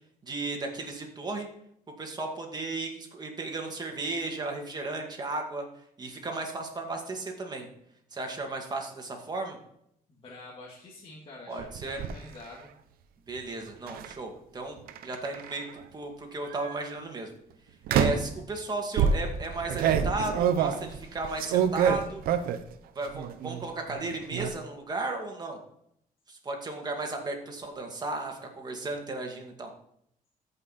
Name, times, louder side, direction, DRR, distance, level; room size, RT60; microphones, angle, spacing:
voice 1, 0.2-1.5 2.0-5.7 6.0-7.7 8.1-9.6 11.5-12.0 13.3-17.3 17.9-22.2 23.0-25.6 26.3-29.7, right 2 dB, 30° right, 2 dB, 2.2 m, -35 dB
voice 2, 10.1-12.7, left 2 dB, 40° left, -4 dB, 2.0 m, -47 dB
sound 1, 11.6-12.1 13.9-14.1 14.9-15.7 16.5-16.8 17.9-18.4 19.0-22.7 23.1-23.6 23.9-24.5, right 7 dB, 90° right, 0.8 m, -27 dB
14.0 x 5.5 x 4.2 m, 0.72 s
cardioid pair, 125°, 15 cm